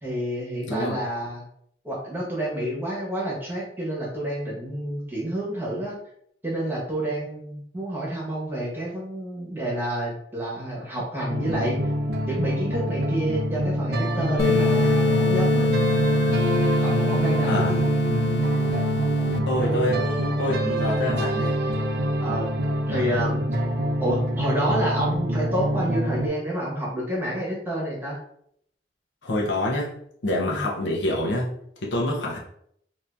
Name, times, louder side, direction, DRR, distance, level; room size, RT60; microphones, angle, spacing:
voice 1, 0.0-1.4 1.8-6.0 6.4-11.9 12.3-15.7 16.8-17.6 22.2-22.5 22.9-23.6 24.0-28.2 30.5-30.6, right 1 dB, 10° right, -5 dB, 1.1 m, -29 dB
voice 2, 0.7-1.0 17.5-17.7 19.5-21.6 29.2-30.0 30.2-31.5 31.8-32.4, left 1 dB, 90° left, -2 dB, 0.9 m, -26 dB
sound 1, 11.3-26.3, equal, 55° right, 0.5 m, -26 dB
sound 2, 14.4-19.4, left 4 dB, 65° left, 0.3 m, -23 dB
2.9 x 2.7 x 3.4 m, 0.69 s
head